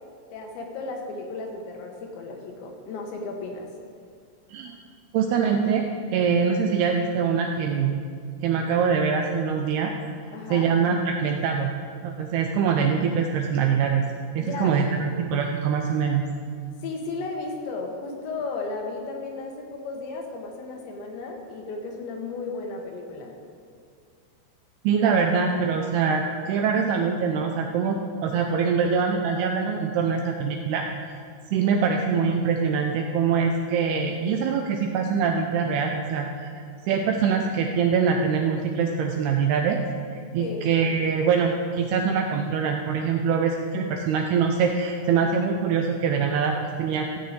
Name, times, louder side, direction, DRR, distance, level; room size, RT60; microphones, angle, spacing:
voice 1, 0.3-3.7 10.3-10.7 14.4-15.2 16.8-23.3 40.4-40.7, left 3 dB, 75° left, 1 dB, 3.3 m, -34 dB
voice 2, 5.1-5.8 6.1-8.0 8.4-9.9 10.5-11.7 12.0-14.1 14.4-16.2 24.8-30.8 31.5-36.5 36.8-39.8 40.3-47.2, right 6 dB, 85° right, 3 dB, 2.2 m, -24 dB
14.0 x 6.6 x 8.0 m, 2.2 s
omnidirectional pair, 5.4 m